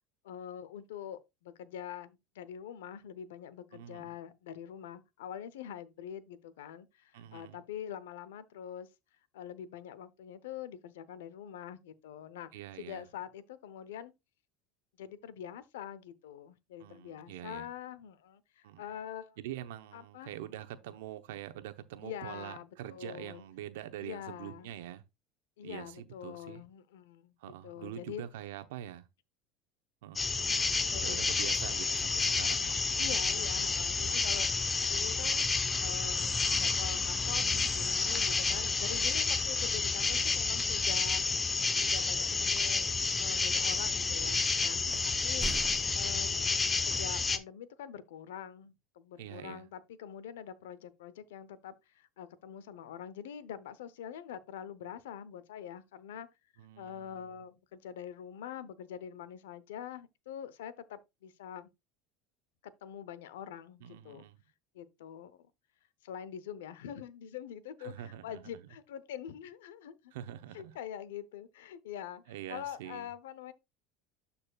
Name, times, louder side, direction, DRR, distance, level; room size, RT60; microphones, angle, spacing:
voice 1, 0.2-8.9 9.3-12.5 12.8-14.1 15.0-19.4 19.9-20.3 22.0-23.4 24.0-24.7 25.6-28.2 30.8-31.2 33.0-41.2 41.8-42.8 43.2-56.3 56.8-61.7 62.8-64.3 64.7-65.5 66.0-70.1 70.5-72.2 72.5-73.5, left 9 dB, 85° left, 0.7 m, -45 dB
voice 2, 3.7-4.1 7.1-7.6 12.5-13.0 16.8-17.7 18.6-18.9 19.4-25.0 25.6-26.6 27.4-29.1 30.0-30.3 31.0-32.8 43.7-44.2 44.8-45.2 49.2-49.7 56.6-57.3 63.8-64.4 67.8-68.6 70.1-70.7 72.3-73.1, right 12 dB, 80° right, 0.8 m, -45 dB
sound 1, 30.2-47.4, left 4 dB, 20° left, 0.7 m, -30 dB
sound 2, 37.6-38.5 42.1-42.2 44.2-44.3 45.0-46.1, right 4 dB, 15° right, 0.6 m, -44 dB
12.0 x 4.2 x 2.3 m
supercardioid pair, 100°, 0 cm